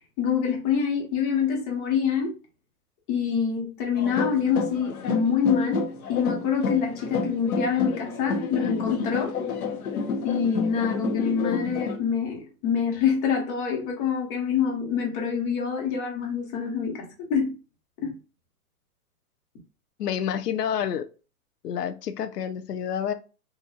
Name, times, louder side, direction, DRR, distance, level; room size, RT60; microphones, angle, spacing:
voice 1, 0.2-2.3 3.1-9.3 10.2-17.5 18.0-18.1, left 7 dB, 35° left, 1.3 m, -26 dB
sound 1, 4.0-12.0, left 4 dB, 65° left, 1.2 m, -30 dB
voice 2, 20.0-21.0 21.6-23.1, left 9 dB, 85° left, 0.8 m, -28 dB
4.2 x 2.6 x 2.4 m
hypercardioid pair, 150°, 46 cm